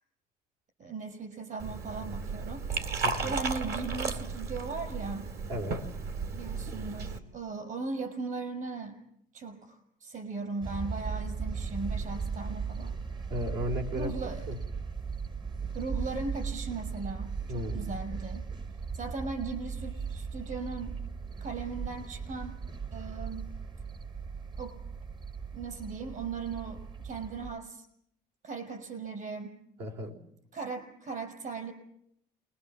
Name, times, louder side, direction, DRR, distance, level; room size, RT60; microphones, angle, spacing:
voice 1, 0.8-2.6 3.2-5.3 6.3-9.0 9.3-13.0 13.9-14.4 15.7-18.5 18.9-21.0 21.4-22.6 22.9-23.5 24.6-24.8 25.5-27.8 28.4-29.6 30.5-31.7, right 4 dB, 50° right, 9 dB, 6.3 m, -38 dB
Liquid, 1.6-7.2, right 4 dB, 65° right, 2.9 m, -34 dB
voice 2, 3.0-3.4 5.5-5.9 13.3-14.6 17.5-17.9 29.8-30.2, equal, 80° right, 2 dB, 4.9 m, -35 dB
sound 1, 10.6-27.6, right 5 dB, 25° right, 0.9 m, -37 dB
28.5 x 21.0 x 7.5 m, 0.73 s
cardioid pair, 110°, 17 cm